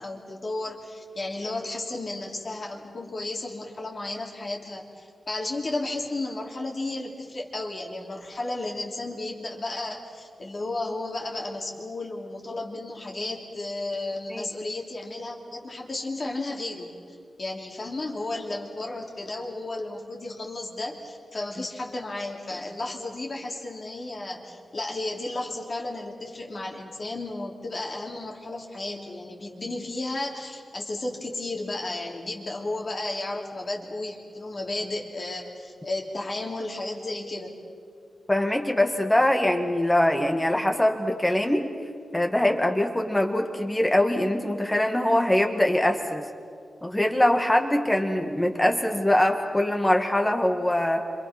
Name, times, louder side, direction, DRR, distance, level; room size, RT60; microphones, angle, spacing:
voice 1, 0.0-16.9 17.4-37.5, left 2 dB, 40° left, -1 dB, 3.0 m, -33 dB
voice 2, 38.3-41.7 42.1-46.2 46.8-51.0, left 1 dB, 10° left, 4 dB, 1.8 m, -23 dB
29.0 x 26.5 x 5.9 m, 2.2 s
wide cardioid pair, 160°, 0 cm